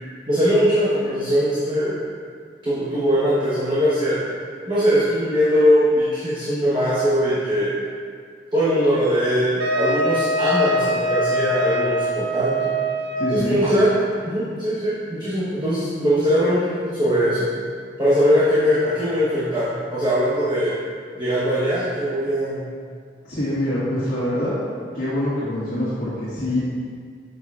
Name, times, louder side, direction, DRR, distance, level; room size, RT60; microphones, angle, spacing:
voice 1, 0.3-2.0 2.6-4.2 4.7-7.7 8.5-12.7 13.3-13.9 14.2-17.5 18.0-20.7 21.1-22.7, equal, 25° right, -10 dB, 1.1 m, -21 dB
Wind instrument woodwind instrument, 9.6-13.4, right 1 dB, 65° right, 0.6 m, -23 dB
voice 2, 13.1-13.6 23.2-24.6 24.9-26.7, left 1 dB, 60° left, -11 dB, 1.6 m, -25 dB
7.4 x 6.6 x 2.5 m, 2.1 s
head